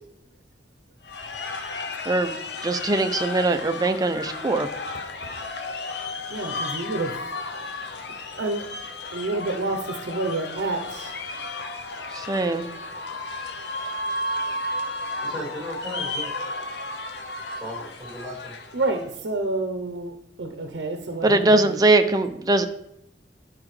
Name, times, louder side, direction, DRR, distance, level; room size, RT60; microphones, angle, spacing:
sound 1, 1.0-19.1, left 2 dB, 70° left, 0.6 m, -33 dB
voice 1, 2.6-4.7 12.3-12.7 21.2-22.7, right 2 dB, 20° right, 7 dB, 0.5 m, -21 dB
voice 2, 6.3-7.2 8.4-8.6 9.1-11.2 18.7-21.8, right 2 dB, 80° right, 5 dB, 0.7 m, -29 dB
voice 3, 15.2-16.4 17.6-18.6, equal, 5° left, -6 dB, 2.7 m, -36 dB
10.5 x 4.7 x 3.2 m, 0.78 s
head